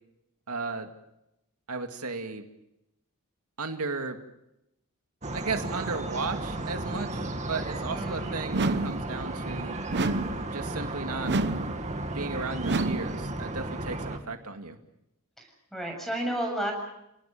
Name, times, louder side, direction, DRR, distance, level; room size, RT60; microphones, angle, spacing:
voice 1, 0.5-0.9 1.7-2.4 3.6-4.2 5.3-9.8 10.5-11.3 12.1-14.8, right 4 dB, 90° right, 5 dB, 2.2 m, -35 dB
sound 1, 5.2-14.2, right 2 dB, 30° right, 2.3 m, -34 dB
voice 2, 7.9-8.4 15.4-16.7, right 1 dB, ahead, 3 dB, 7.3 m, -32 dB
sound 2, 8.5-9.1 9.9-10.5 11.2-11.8 12.6-13.2, right 2 dB, 50° right, 1.0 m, -28 dB
29.5 x 18.5 x 7.4 m, 0.86 s
head